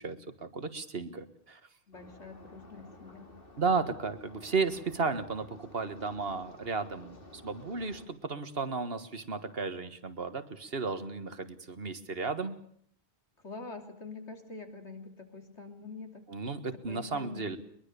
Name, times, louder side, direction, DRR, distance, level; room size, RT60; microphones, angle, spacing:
voice 1, 0.0-1.6 3.6-12.6 16.3-17.6, right 4 dB, 60° right, 10 dB, 1.8 m, -34 dB
voice 2, 1.9-3.4 3.7-4.0 13.4-16.5 16.9-17.6, left 3 dB, 85° left, 4 dB, 3.6 m, -46 dB
sound 1, 1.9-8.1, left 2 dB, 55° left, 3.0 m, -53 dB
22.5 x 22.0 x 6.9 m, 0.65 s
omnidirectional pair, 1.1 m